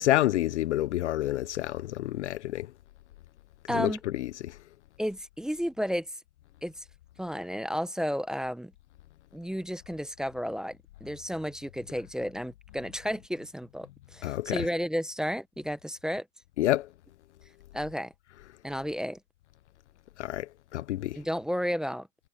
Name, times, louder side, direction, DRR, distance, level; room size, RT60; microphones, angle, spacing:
voice 1, 0.0-2.7 3.7-4.6 14.2-14.7 16.6-16.9 20.2-21.2, left 14 dB, 45° left, 0.6 m, -28 dB
voice 2, 3.7-4.0 5.0-6.1 6.6-6.8 7.2-8.7 9.3-16.3 17.7-18.1 18.6-19.2 21.2-22.1, equal, ahead, 0.8 m, -32 dB
hypercardioid pair, 135°, 49 cm